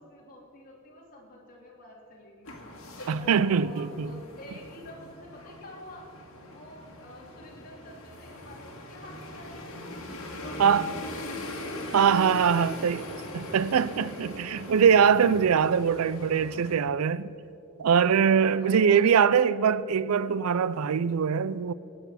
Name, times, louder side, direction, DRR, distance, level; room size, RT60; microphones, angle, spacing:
voice 1, 0.0-2.6 3.1-6.1 6.5-9.9 10.4-13.6 18.5-19.1, left 1 dB, 45° left, 3.0 m, -48 dB
Traffic Queen and Dufferin, 2.4-16.8, left 1 dB, 65° left, 2.2 m, -41 dB
voice 2, 3.1-4.1 10.6-10.9 11.9-13.0 13.3-17.3 17.8-21.7, right 7 dB, 85° right, 0.4 m, -22 dB
20.0 x 9.4 x 5.8 m
head